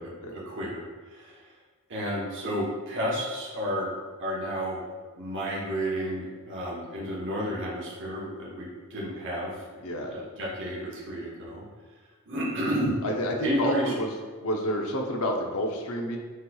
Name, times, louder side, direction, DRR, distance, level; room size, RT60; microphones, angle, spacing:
voice 1, 0.0-1.5 1.9-3.9 4.2-4.8 5.1-11.6 12.3-13.0 13.4-13.9, equal, 55° right, -5 dB, 1.0 m, -32 dB
voice 2, 13.0-14.1 14.4-16.2, equal, 65° left, 0 dB, 0.7 m, -29 dB
6.4 x 3.1 x 2.3 m, 1.4 s
head